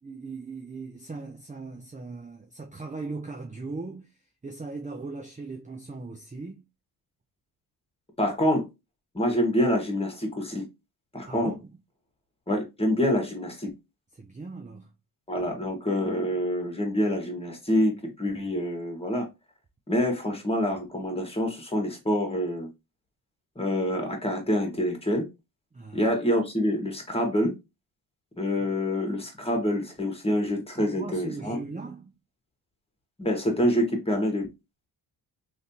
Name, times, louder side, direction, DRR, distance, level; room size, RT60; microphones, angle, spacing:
voice 1, 0.0-4.2 4.4-6.6 11.3-11.7 14.1-14.9 25.7-26.1 28.6-28.7 30.8-32.1, right 3 dB, 15° right, 0.6 m, -39 dB
voice 2, 8.2-8.7 9.1-10.7 11.1-11.5 12.5-13.7 15.3-19.3 19.9-22.7 23.6-25.3 25.9-27.6 28.4-31.6 33.2-34.5, equal, 15° left, 1.6 m, -26 dB
3.2 x 2.9 x 2.8 m
supercardioid pair, 60°, 44 cm